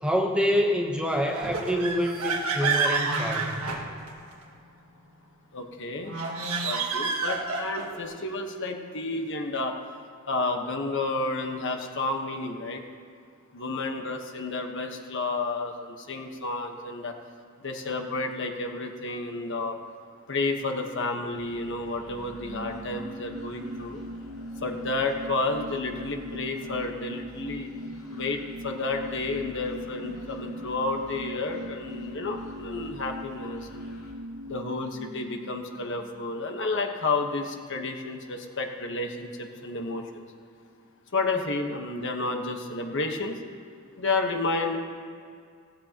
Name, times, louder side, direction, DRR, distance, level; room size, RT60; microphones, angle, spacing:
voice 1, 0.0-3.6, equal, 5° right, 1 dB, 0.9 m, -26 dB
sound 1, 1.3-4.4 6.0-8.0, right 4 dB, 80° right, 1.5 m, -29 dB
voice 2, 5.5-6.2 6.6-9.8 10.3-12.8 13.5-17.1 17.6-19.8 20.3-24.0 24.6-27.7 28.1-33.9 34.5-40.2 41.1-43.4 44.0-44.8, left 3 dB, 55° left, 4 dB, 1.2 m, -31 dB
sound 2, 21.3-34.1, left 1 dB, 85° left, 2.3 m, -50 dB
sound 3, 21.9-36.9 37.2-37.3, equal, 50° right, 1.0 m, -40 dB
16.5 x 15.5 x 2.9 m, 2.3 s
head